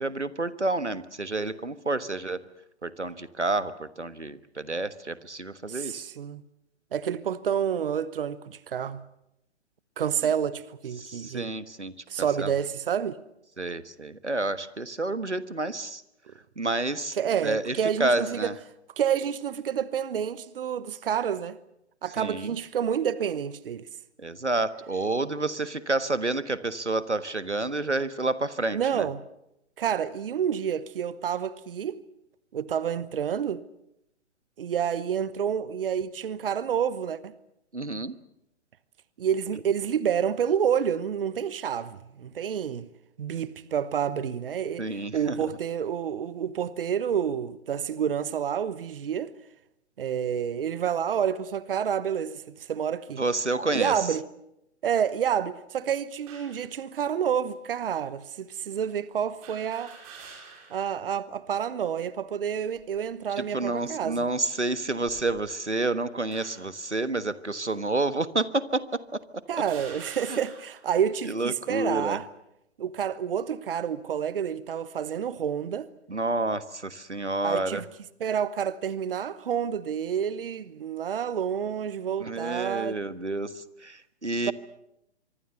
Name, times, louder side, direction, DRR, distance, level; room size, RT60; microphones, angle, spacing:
voice 1, 0.0-2.4 2.8-6.1 11.0-11.9 12.4-12.5 13.6-16.0 16.6-17.2 17.4-18.5 22.2-22.5 24.2-29.1 37.7-38.1 44.8-45.5 53.2-54.0 63.4-68.8 69.1-69.2 70.3-70.4 71.2-72.2 76.1-77.8 82.2-84.5, right 2 dB, 90° right, 1.5 m, -29 dB
voice 2, 5.7-6.4 6.9-9.0 10.0-11.5 12.1-13.2 17.2-18.5 19.0-21.6 22.0-23.9 28.7-29.2 29.8-32.0 32.5-33.6 34.6-37.3 39.2-42.9 43.2-44.8 45.1-49.3 50.0-53.2 53.7-54.2 54.8-60.0 60.7-64.3 69.5-72.3 72.8-75.9 77.4-77.8 78.2-83.0 84.4-84.5, right 8 dB, 55° right, 1.1 m, -29 dB
sound 1, 56.3-56.6 57.5-57.6 59.4-60.9 61.3-61.4 62.5-63.0 63.7-63.9 64.9-65.7 66.3-66.8 67.7-67.8 68.7-68.8 69.5-70.9, right 5 dB, 30° right, 6.5 m, -47 dB
25.0 x 24.0 x 6.8 m
figure-of-eight pair, 125°, 34 cm